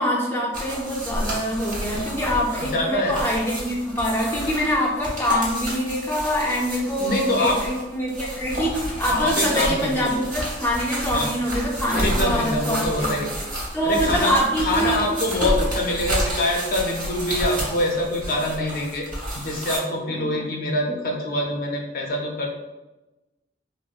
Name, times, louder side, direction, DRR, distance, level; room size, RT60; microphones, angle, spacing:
voice 1, 0.0-13.3 13.7-15.1 20.1-20.4, equal, 15° left, -3 dB, 0.5 m, -25 dB
sound 1, 0.5-19.8, right 1 dB, 50° right, 1.3 m, -30 dB
voice 2, 2.6-3.2 7.0-7.8 9.1-10.1 11.1-11.4 11.9-13.3 13.8-19.1 19.3-22.5, left 1 dB, 55° left, 0 dB, 0.6 m, -25 dB
4.2 x 2.0 x 2.4 m, 1.0 s
head